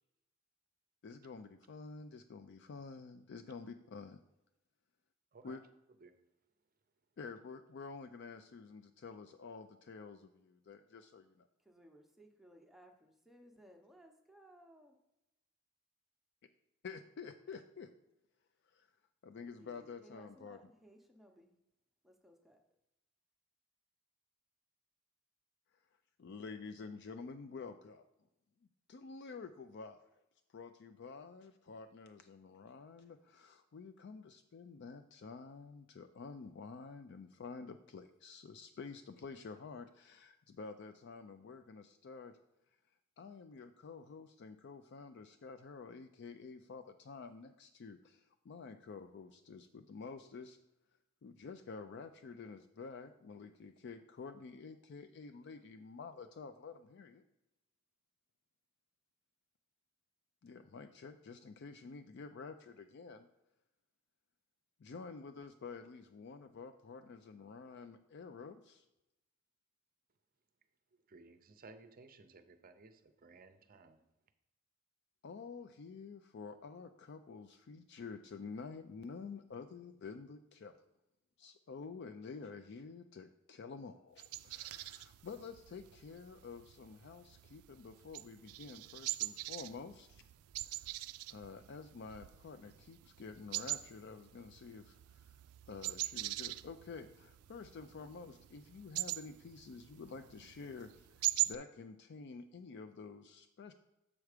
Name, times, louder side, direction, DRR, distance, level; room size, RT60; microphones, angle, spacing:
voice 1, 1.0-4.2 5.4-5.6 7.2-11.5 16.8-17.9 18.6-18.9 19.2-20.6 26.2-28.1 28.9-30.0 30.5-42.4 43.2-50.6 51.2-57.2 60.4-63.3 64.8-68.8 75.2-80.8 81.4-90.2 90.7-90.8 91.3-95.4 95.7-103.7, left 4 dB, 50° left, 8 dB, 0.4 m, -49 dB
voice 2, 11.6-15.0 19.4-21.5 22.0-22.6, right 1 dB, ahead, 2 dB, 0.7 m, -61 dB
voice 3, 71.1-74.1, right 3 dB, 40° right, 10 dB, 0.6 m, -58 dB
sound 1, 84.2-101.6, right 17 dB, 90° right, 0.3 m, -43 dB
7.3 x 4.6 x 4.9 m, 0.91 s
head